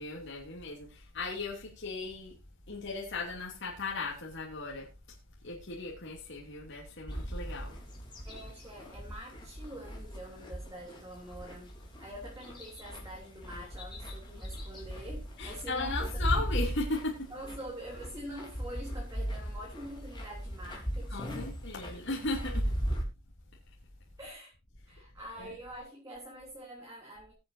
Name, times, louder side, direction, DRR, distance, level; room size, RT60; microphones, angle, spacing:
voice 1, 0.0-2.4 2.7-4.9 5.4-7.8 15.4-17.3 21.1-22.7 25.4-25.5, left 3 dB, 60° left, -2 dB, 2.9 m, -37 dB
sound 1, 7.1-23.0, equal, 25° left, 3.7 m, -38 dB
voice 2, 8.2-16.1 16.4-16.5 17.3-21.5 21.9-22.0 22.9-23.0 24.2-24.5 24.9-27.3, equal, 15° right, -3 dB, 3.4 m, -45 dB
21.0 x 8.0 x 2.8 m, 0.26 s
head